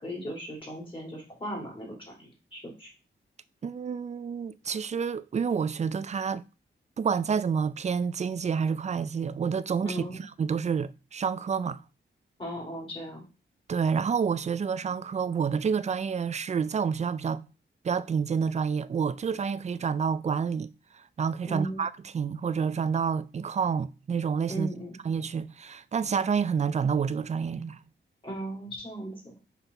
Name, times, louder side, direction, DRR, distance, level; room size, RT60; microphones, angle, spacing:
voice 1, 0.0-2.9 9.8-10.2 12.4-13.2 21.5-21.8 24.5-24.9 28.2-29.3, right 1 dB, 25° left, 3.2 m, -37 dB
voice 2, 3.6-6.4 7.0-11.8 13.7-17.4 17.8-24.7 25.0-27.8, right 6 dB, 35° right, 0.3 m, -29 dB
5.7 x 5.5 x 3.5 m
wide cardioid pair, 145°, 20 cm